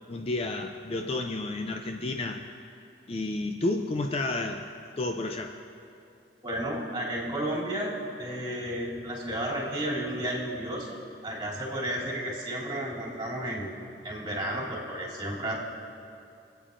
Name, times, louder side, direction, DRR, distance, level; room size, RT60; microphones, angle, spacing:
voice 1, 0.1-2.5 3.1-4.7 5.0-5.6, left 2 dB, 35° left, 5 dB, 0.4 m, -31 dB
voice 2, 6.4-11.0 11.2-13.7 14.0-15.5, right 1 dB, 25° right, -6 dB, 2.9 m, -32 dB
26.0 x 9.0 x 2.5 m, 2.5 s
head